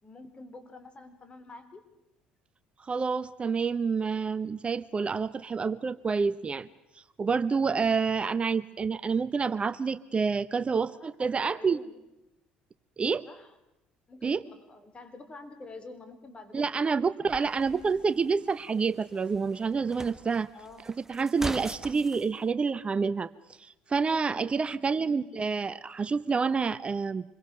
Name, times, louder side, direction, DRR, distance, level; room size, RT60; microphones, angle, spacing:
voice 1, 0.0-1.8 10.7-11.1 11.4-11.9 13.3-13.5 14.1-16.9 20.5-21.0 24.9-25.7, left 3 dB, 30° left, 8 dB, 4.1 m, -48 dB
voice 2, 2.8-6.7 6.9-11.8 13.0-13.3 14.2-14.4 16.5-20.5 20.8-23.3 23.6-27.2, right 5 dB, 30° right, 15 dB, 0.7 m, -28 dB
sound 1, 17.3-22.3, right 1 dB, 10° right, 1.1 m, -42 dB
26.5 x 22.5 x 6.6 m, 0.92 s
hypercardioid pair, 65°, 4 cm